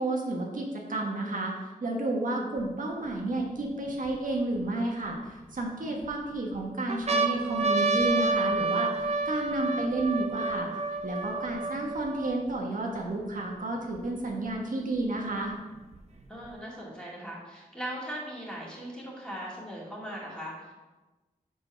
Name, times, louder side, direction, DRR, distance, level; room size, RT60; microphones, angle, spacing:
voice 1, 0.0-1.5 1.8-10.7 11.0-15.5, right 2 dB, 65° right, -1 dB, 1.3 m, -31 dB
sound 1, 2.6-2.7 3.3-4.6 5.3-6.1 6.5-6.6 6.9-12.5 13.2-13.3 13.5-14.5 15.4-16.5, right 3 dB, 45° right, 0.7 m, -29 dB
voice 2, 16.3-20.7, equal, 5° left, -5 dB, 2.4 m, -39 dB
6.8 x 4.8 x 5.6 m, 1.2 s
wide cardioid pair, 120°, 15 cm